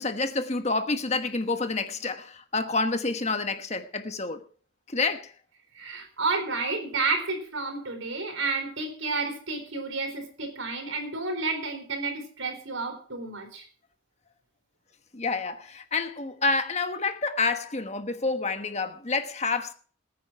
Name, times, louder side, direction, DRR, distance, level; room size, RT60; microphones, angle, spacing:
voice 1, 0.0-4.4 4.9-5.3 15.1-19.7, left 3 dB, 35° left, 1.2 m, -28 dB
voice 2, 5.7-13.6, right 3 dB, 80° right, 4.3 m, -31 dB
20.5 x 9.3 x 4.6 m
head